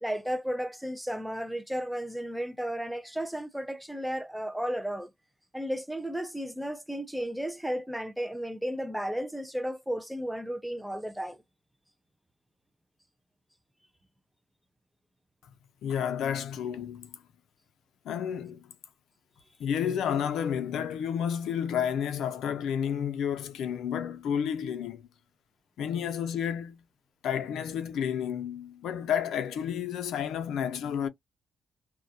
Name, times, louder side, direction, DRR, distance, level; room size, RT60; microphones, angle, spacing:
voice 1, 0.0-5.1 5.5-11.4, equal, ahead, 0.3 m, -34 dB
voice 2, 15.8-17.2 18.0-18.7 19.6-25.1 25.8-26.8 27.2-31.1, left 8 dB, 80° left, 0.5 m, -31 dB
2.2 x 2.1 x 2.6 m
cardioid pair, 165°, 0 cm